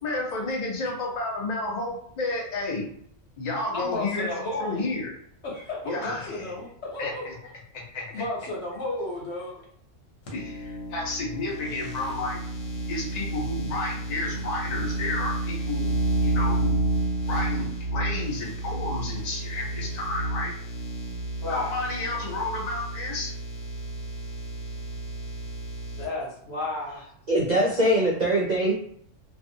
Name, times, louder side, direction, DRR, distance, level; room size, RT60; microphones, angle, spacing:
voice 1, 0.0-2.8 3.4-5.1 5.8-6.6 7.0-7.3 7.7-8.2 10.3-12.4 12.9-15.9 16.2-16.9 17.3-17.7 17.9-20.5 21.5-23.3, left 2 dB, 40° left, -2 dB, 0.7 m, -31 dB
voice 2, 3.7-4.9 5.4-7.3 8.1-9.6 21.4-21.7 25.9-27.0, left 2 dB, 60° left, -4 dB, 0.9 m, -32 dB
sound 1, 10.3-26.1, right 2 dB, 90° left, 1.2 m, -30 dB
voice 3, 27.3-28.7, right 1 dB, 70° right, -3 dB, 0.4 m, -22 dB
2.5 x 2.3 x 2.6 m, 0.64 s
omnidirectional pair, 1.4 m